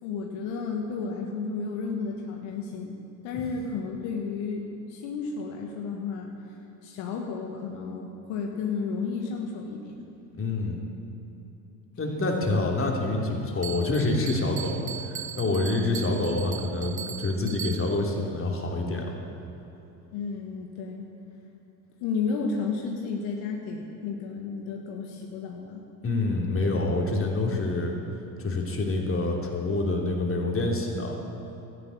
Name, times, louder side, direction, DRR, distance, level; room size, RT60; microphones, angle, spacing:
voice 1, 0.0-3.0 3.2-6.3 6.8-10.0 20.1-21.1 22.0-25.8, left 5 dB, 65° left, 0 dB, 1.7 m, -32 dB
voice 2, 10.4-10.8 12.0-19.2 26.0-28.0 28.4-31.2, left 2 dB, 25° left, 0 dB, 3.1 m, -27 dB
Bell, 13.6-18.1, right 9 dB, 20° right, 0.3 m, -39 dB
13.0 x 11.0 x 8.9 m, 2.9 s
hypercardioid pair, 70°, 49 cm